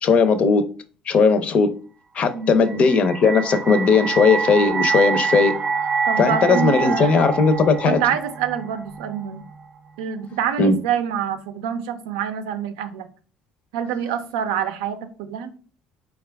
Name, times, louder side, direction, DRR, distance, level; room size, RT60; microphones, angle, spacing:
voice 1, 0.0-0.6 1.1-1.7 2.2-5.5 6.2-8.0 10.6-10.7, left 4 dB, 50° left, 0.6 m, -17 dB
sound 1, 2.7-9.8, right 5 dB, 30° right, 0.4 m, -26 dB
voice 2, 6.1-7.2 7.8-9.4 10.0-13.1 13.7-15.5, right 8 dB, 90° right, 0.5 m, -26 dB
4.3 x 2.4 x 3.3 m
supercardioid pair, 90°, 3 cm